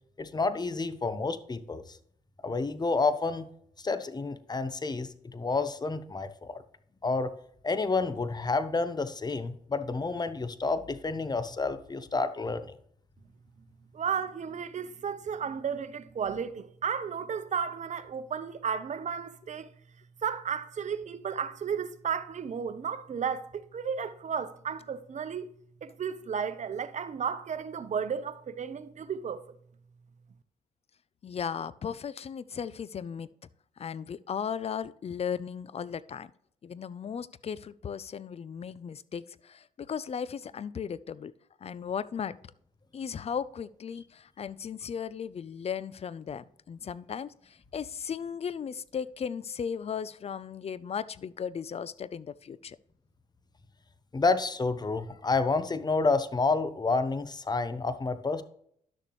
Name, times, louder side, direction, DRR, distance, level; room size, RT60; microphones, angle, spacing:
voice 1, 0.2-2.0 2.4-3.5 3.8-6.6 7.0-7.3 7.6-12.7 54.1-58.4, left 3 dB, 30° left, 0.9 m, -29 dB
voice 2, 13.9-19.7 20.2-25.5 25.8-29.4, right 7 dB, 55° right, 0.9 m, -33 dB
voice 3, 31.2-33.3 33.8-36.3 36.6-41.3 41.6-42.4 42.9-52.8, left 7 dB, 45° left, 0.5 m, -36 dB
11.5 x 6.7 x 3.1 m
supercardioid pair, 55°, 15 cm